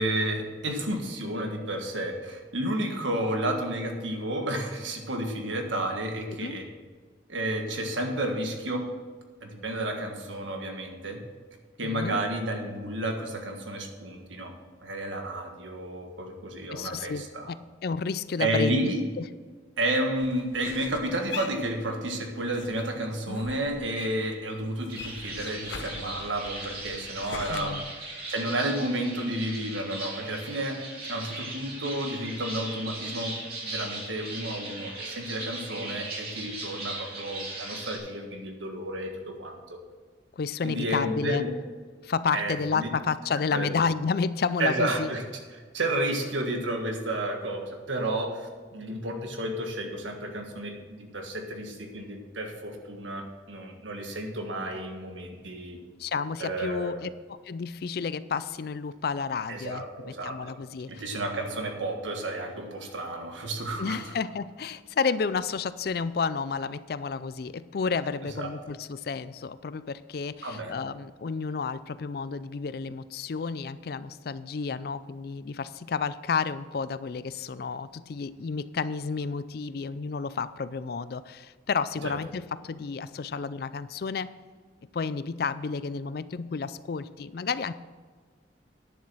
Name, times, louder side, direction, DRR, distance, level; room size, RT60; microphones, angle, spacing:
voice 1, 0.0-6.6 7.3-8.8 9.4-11.2 11.8-14.5 14.8-17.5 18.4-19.0 19.8-27.8 28.3-30.8 31.1-33.3 33.6-39.8 40.6-41.5 42.3-42.9 43.3-43.8 44.6-45.2 45.5-55.8 56.4-57.0 59.5-60.5 60.9-64.0 68.3-68.5 70.4-70.7, right 1 dB, 85° right, 3 dB, 1.6 m, -31 dB
voice 2, 11.8-12.2 16.7-17.6 17.8-18.9 19.2-19.3 27.5-27.9 40.4-41.4 42.0-45.1 56.0-57.1 57.4-61.0 63.8-84.3 84.9-87.7, left 5 dB, 55° left, 15 dB, 0.4 m, -31 dB
sound 1, 20.2-22.2 22.5-24.4 24.6-27.6, left 4 dB, 80° left, 0.9 m, -42 dB
sound 2, 24.9-38.0, right 2 dB, 50° right, 3.3 m, -38 dB
10.5 x 7.2 x 6.2 m, 1.5 s
head